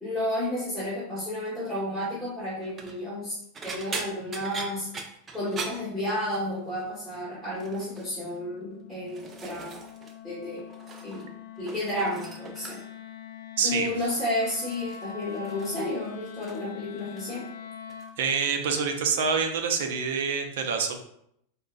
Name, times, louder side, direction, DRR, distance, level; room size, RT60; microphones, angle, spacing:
voice 1, 0.0-3.4 3.6-4.9 5.3-9.8 10.2-10.7 11.0-11.3 11.6-12.8 13.6-17.4, left 1 dB, ahead, -10 dB, 1.4 m, -31 dB
sound 1, 2.6-3.0 3.5-6.6 6.9-7.2 7.6-8.1 8.7-10.2 10.4-11.3 11.6-13.1 14.0-14.3 14.7-16.7 17.0-17.5 17.9-18.1 19.4-19.5, right 4 dB, 25° right, 0.4 m, -41 dB
Wind instrument woodwind instrument, 6.7-18.2, left 9 dB, 60° left, 0.5 m, -44 dB
voice 2, 13.6-13.9 18.2-21.0, right 5 dB, 75° right, 5 dB, 0.5 m, -26 dB
4.7 x 2.2 x 2.5 m, 0.73 s
supercardioid pair, 130°, 0 cm